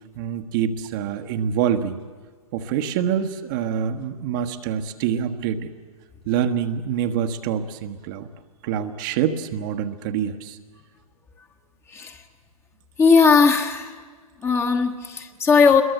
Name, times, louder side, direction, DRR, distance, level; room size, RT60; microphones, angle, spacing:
voice 1, 0.2-2.0 2.5-5.7 6.3-8.3 8.6-10.6, right 8 dB, 35° right, 6 dB, 1.3 m, -25 dB
voice 2, 13.0-13.9 14.4-15.8, left 5 dB, 15° left, 5 dB, 1.4 m, -17 dB
27.0 x 22.0 x 7.8 m, 1.5 s
figure-of-eight pair, 115°, 19 cm